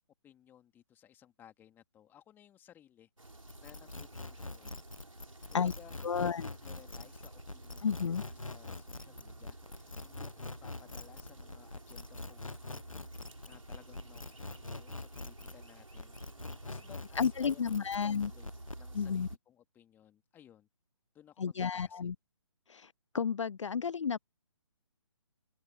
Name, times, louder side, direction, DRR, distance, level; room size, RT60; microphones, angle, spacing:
voice 1, 0.2-3.1 3.6-4.8 5.5-12.9 13.4-16.1 16.6-18.5 18.8-20.7 21.1-22.1, left 10 dB, 10° left, 2.8 m, -59 dB
sound 1, 3.2-19.4, right 2 dB, 85° right, 3.4 m, -52 dB
sound 2, 3.5-15.6 16.0-18.8, left 2 dB, 90° left, 1.3 m, -44 dB
voice 2, 6.0-6.5 7.8-8.2 17.2-18.3 18.9-19.3 21.4-22.1 22.7-24.2, left 6 dB, 65° left, 0.5 m, -32 dB
open air
figure-of-eight pair, 140°, 17 cm